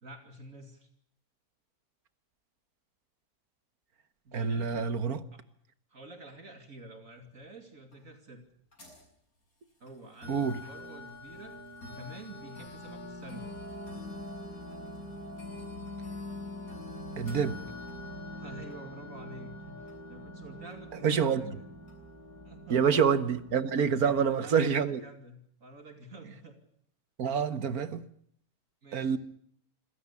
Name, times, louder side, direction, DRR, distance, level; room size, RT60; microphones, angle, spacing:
voice 1, 0.0-0.9 4.2-4.9 5.3-5.4 5.9-8.5 9.8-13.6 18.3-21.7 22.4-22.9 24.0-26.6 28.8-29.2, right 1 dB, 65° right, 3.1 m, -49 dB
voice 2, 4.3-5.2 10.3-10.6 17.2-17.6 21.0-21.5 22.7-25.0 27.2-28.1 28.9-29.2, right 6 dB, 85° right, 1.9 m, -27 dB
sound 1, 7.9-8.0 8.7-9.0 9.9-10.0 10.2-24.3, left 1 dB, 75° left, 7.8 m, -44 dB
26.0 x 17.0 x 8.4 m
omnidirectional pair, 1.5 m